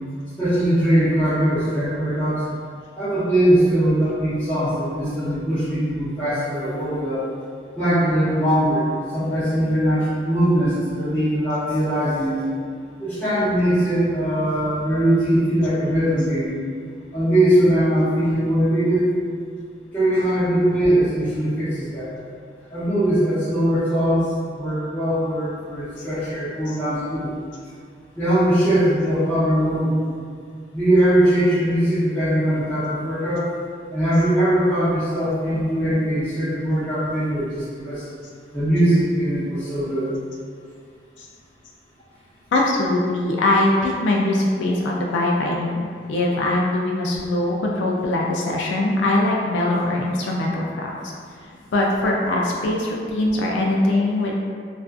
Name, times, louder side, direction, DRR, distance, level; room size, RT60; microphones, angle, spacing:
voice 1, 0.4-2.4 3.0-7.2 7.8-12.4 13.0-16.5 17.1-19.1 19.9-22.1 22.7-27.3 28.1-30.0 30.7-33.5 33.9-38.0 38.5-40.1, right 1 dB, 10° left, -16 dB, 0.7 m, -21 dB
voice 2, 42.5-50.9 51.7-54.3, left 2 dB, 90° left, -2 dB, 0.3 m, -22 dB
2.4 x 2.4 x 2.3 m, 2.1 s
head